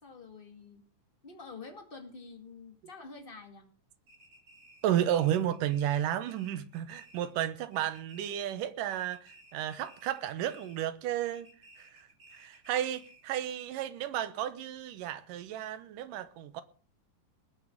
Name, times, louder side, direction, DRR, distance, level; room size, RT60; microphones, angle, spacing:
voice 1, 0.0-0.8 1.2-3.6, left 4 dB, 20° left, 1.6 m, -48 dB
sound 1, 4.1-7.4 7.7-8.6 8.9-10.9 11.2-13.4, right 1 dB, 35° right, 3.8 m, -58 dB
voice 2, 4.8-11.5 11.8-12.1 12.3-16.6, right 11 dB, 80° right, 2.7 m, -32 dB
19.5 x 7.0 x 6.6 m
omnidirectional pair, 3.8 m